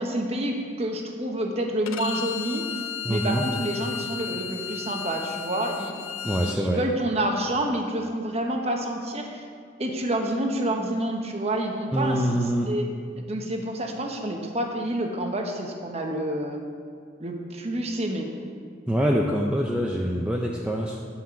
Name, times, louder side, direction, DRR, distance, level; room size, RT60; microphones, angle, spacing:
voice 1, 0.0-2.7 3.1-5.9 6.2-9.4 9.8-12.8 13.3-16.6 17.2-18.3, right 1 dB, 30° right, 2 dB, 1.0 m, -28 dB
Bowed string instrument, 1.9-6.6, left 8 dB, 85° left, 0.4 m, -34 dB
voice 2, 3.0-3.5 6.2-6.8 11.9-12.7 18.9-21.0, equal, 5° right, -2 dB, 0.5 m, -25 dB
10.0 x 5.7 x 7.0 m, 2.1 s
head